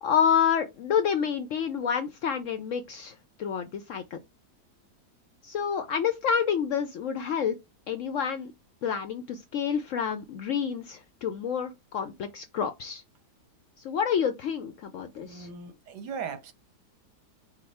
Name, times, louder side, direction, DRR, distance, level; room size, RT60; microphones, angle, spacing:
voice 1, 0.0-3.1 3.4-4.2 5.4-7.5 7.9-8.5 8.8-13.0 13.8-15.5, left 7 dB, 70° left, 0.7 m, -28 dB
voice 2, 15.2-16.5, right 6 dB, 85° right, 1.5 m, -38 dB
5.1 x 2.1 x 4.2 m
omnidirectional pair, 1.8 m